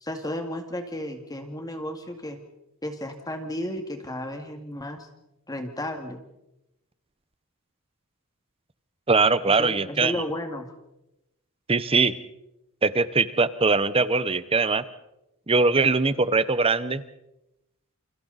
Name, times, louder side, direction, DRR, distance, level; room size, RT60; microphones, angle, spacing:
voice 1, 0.0-2.4 2.8-5.1 5.5-6.2 9.5-10.7, left 1 dB, 15° left, 5 dB, 2.1 m, -33 dB
voice 2, 9.1-10.1 11.7-12.1 12.8-14.8 15.5-17.0, right 4 dB, 25° right, 15 dB, 0.9 m, -21 dB
28.5 x 28.0 x 4.1 m, 0.89 s
head